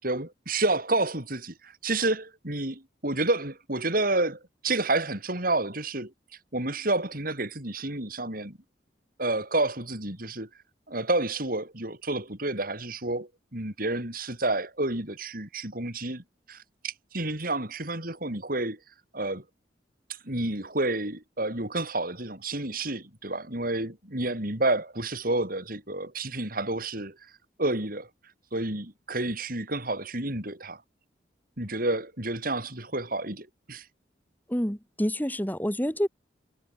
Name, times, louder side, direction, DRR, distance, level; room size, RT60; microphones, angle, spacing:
voice 1, 0.0-6.1 6.5-8.6 9.2-10.5 10.9-18.8 19.1-19.4 20.2-27.2 27.6-28.1 28.5-30.8 31.6-33.8, right 2 dB, 55° right, 7.3 m, -30 dB
voice 2, 34.5-36.1, equal, 10° left, 5.9 m, -28 dB
head